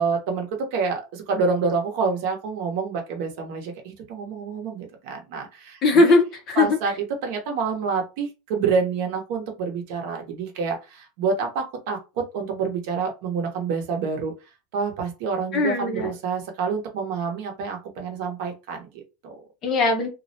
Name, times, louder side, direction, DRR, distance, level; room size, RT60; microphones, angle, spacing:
voice 1, 0.0-6.1 6.6-14.3 14.7-19.4, right 5 dB, 55° right, 3 dB, 0.7 m, -27 dB
voice 2, 5.8-6.8 15.5-16.1 19.6-20.1, left 3 dB, 30° left, 4 dB, 0.5 m, -19 dB
2.3 x 2.1 x 2.6 m, 0.27 s
supercardioid pair, 170°, 0 cm